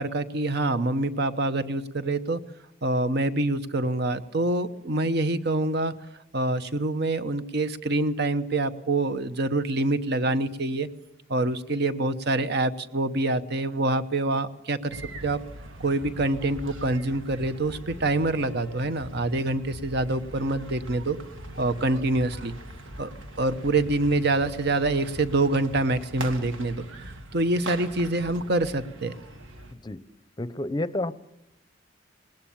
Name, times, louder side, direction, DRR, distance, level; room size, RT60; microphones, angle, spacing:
voice 1, 0.0-2.4 2.8-5.9 6.3-10.9 11.3-15.4 15.8-21.2 21.6-22.5 23.0-23.1 23.4-29.1, right 2 dB, 60° right, 11 dB, 1.0 m, -26 dB
sound 1, 14.9-29.7, right 1 dB, 85° right, 2.3 m, -41 dB
voice 2, 30.4-31.1, left 1 dB, 20° left, 16 dB, 0.7 m, -29 dB
20.0 x 19.5 x 7.2 m, 0.83 s
head